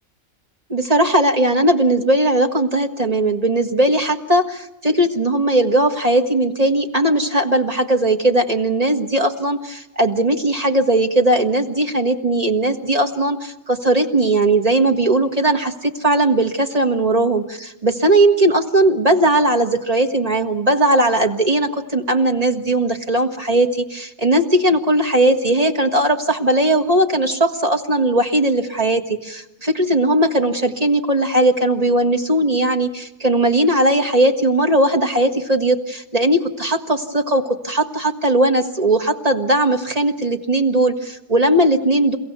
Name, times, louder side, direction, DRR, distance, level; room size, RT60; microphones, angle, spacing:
voice 1, 0.7-42.2, right 1 dB, 25° right, 5 dB, 1.6 m, -18 dB
29.5 x 16.5 x 6.9 m, 0.98 s
omnidirectional pair, 1.5 m